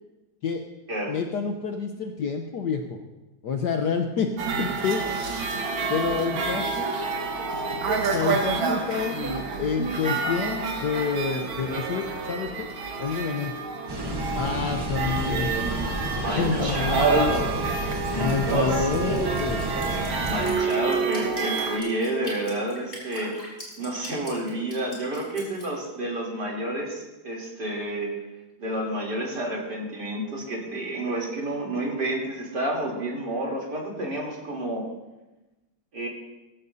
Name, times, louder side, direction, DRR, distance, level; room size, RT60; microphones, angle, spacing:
voice 1, 1.1-3.0 3.4-4.3 4.6-5.0 5.9-6.9 8.1-12.7 13.0-13.5 14.3-15.5 16.2-17.3 18.1-19.7, left 6 dB, 65° left, 4 dB, 1.4 m, -28 dB
sound 1, 4.4-21.8, right 4 dB, 75° right, 2.5 m, -28 dB
voice 2, 10.2-10.7 16.2-17.5 18.1-19.2 20.3-23.3 23.8-28.1 28.6-34.9 35.9-36.1, right 1 dB, 55° right, -2 dB, 3.8 m, -30 dB
sound 2, 13.9-20.5, right 1 dB, 15° right, 0.9 m, -31 dB
Drip, 18.0-25.7, left 1 dB, 25° left, 4.7 m, -42 dB
21.0 x 15.0 x 2.7 m, 1.1 s
omnidirectional pair, 2.2 m